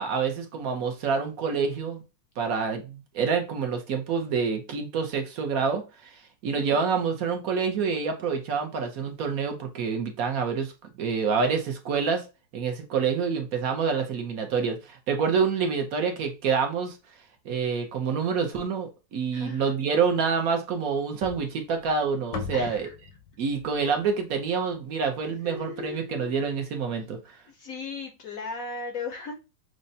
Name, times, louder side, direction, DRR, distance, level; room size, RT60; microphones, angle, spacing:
voice 1, 0.0-2.0 2.4-10.7 11.0-12.3 12.5-17.0 17.4-22.9 23.4-27.4, right 5 dB, 65° right, 0.9 m, -27 dB
voice 2, 19.3-19.7 22.5-22.9 25.4-26.4 27.5-29.3, left 4 dB, 65° left, 0.8 m, -37 dB
sound 1, 21.2-25.5, left 5 dB, 85° left, 1.7 m, -41 dB
6.3 x 2.1 x 2.6 m
omnidirectional pair, 2.1 m